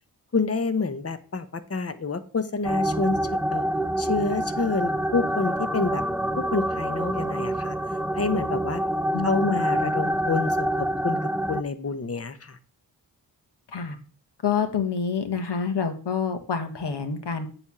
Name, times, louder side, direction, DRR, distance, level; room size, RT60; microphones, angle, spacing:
voice 1, 0.3-3.2 3.5-3.6 4.0-6.0 6.4-7.7 8.2-8.8 9.2-11.2 11.5-12.6, left 4 dB, 35° left, 11 dB, 1.0 m, -28 dB
sound 1, 2.6-11.6, right 1 dB, 5° right, 0.4 m, -26 dB
voice 2, 9.1-9.6 13.7-14.0 14.4-17.5, left 6 dB, 65° left, 7 dB, 1.5 m, -27 dB
8.1 x 3.4 x 6.1 m, 0.40 s
cardioid pair, 50°, 44 cm